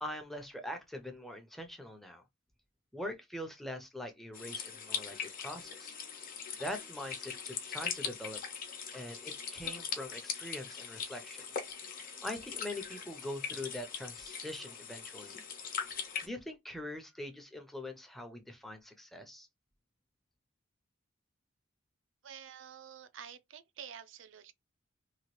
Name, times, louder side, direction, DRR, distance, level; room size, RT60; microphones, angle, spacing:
voice 1, 0.0-2.2 2.9-5.9 6.6-8.4 8.9-11.4 12.2-15.3 16.2-19.5, left 1 dB, ahead, 0.5 m, -43 dB
sound 1, 4.3-16.3, left 6 dB, 45° left, 0.8 m, -41 dB
voice 2, 22.2-24.5, right 8 dB, 70° right, 0.5 m, -49 dB
2.9 x 2.3 x 3.0 m
head